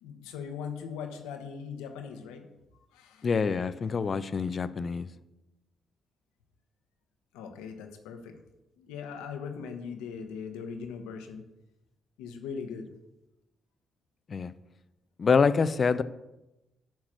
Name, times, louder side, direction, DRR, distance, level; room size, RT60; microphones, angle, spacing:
voice 1, 0.0-2.5 2.7-3.3 7.3-8.4 8.8-11.4 12.2-12.9, left 6 dB, 80° left, 5 dB, 1.0 m, -40 dB
voice 2, 3.2-5.1 14.3-14.5 15.2-16.0, left 5 dB, 45° left, 14 dB, 0.5 m, -26 dB
8.9 x 4.7 x 6.2 m, 0.96 s
hypercardioid pair, 45°, 0 cm